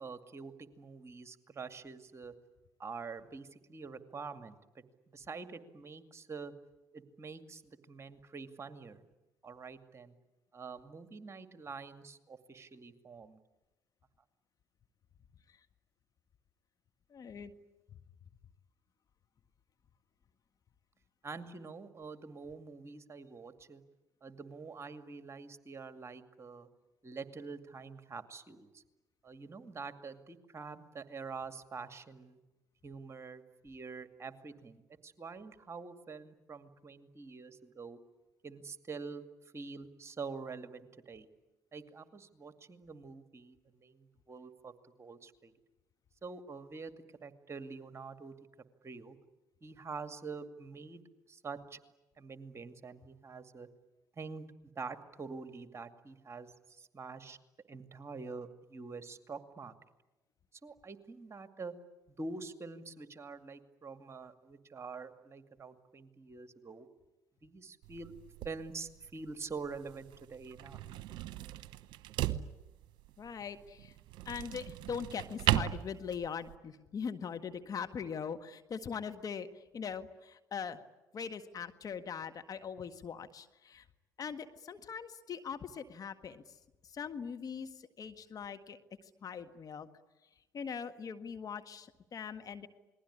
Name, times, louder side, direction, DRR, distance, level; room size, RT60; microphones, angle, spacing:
voice 1, 0.0-2.4 2.8-6.5 6.9-9.0 9.4-10.1 10.5-13.4 21.2-23.8 24.2-26.7 27.0-28.8 29.2-32.4 32.8-38.0 38.4-41.3 41.7-45.5 46.2-46.9 47.2-48.4 48.8-49.2 49.6-51.0 51.3-51.8 52.2-53.7 54.2-54.5 54.8-57.4 57.7-59.7 60.6-61.8 62.1-66.9 67.4-68.1 68.4-70.8, right 4 dB, 30° right, 9 dB, 2.3 m, -46 dB
voice 2, 17.1-17.5 73.2-73.9 74.2-80.8 81.1-83.8 84.2-86.6 86.8-88.8 89.2-89.9 90.5-92.7, left 6 dB, 45° left, 8 dB, 1.7 m, -41 dB
sound 1, 67.8-76.6, right 14 dB, 65° right, 1.0 m, -38 dB
28.5 x 21.0 x 9.9 m, 1.1 s
hypercardioid pair, 55°, 9 cm